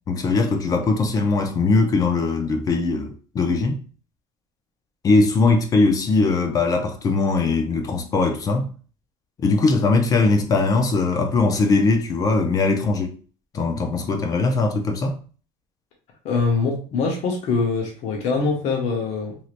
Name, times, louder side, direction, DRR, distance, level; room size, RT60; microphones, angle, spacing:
voice 1, 0.1-3.8 5.0-8.7 9.4-13.2 13.5-15.2, left 3 dB, 25° left, 0.4 m, -20 dB
voice 2, 16.2-19.4, left 4 dB, 50° left, 0.9 m, -23 dB
3.1 x 2.7 x 2.4 m
cardioid pair, 165°, 15 cm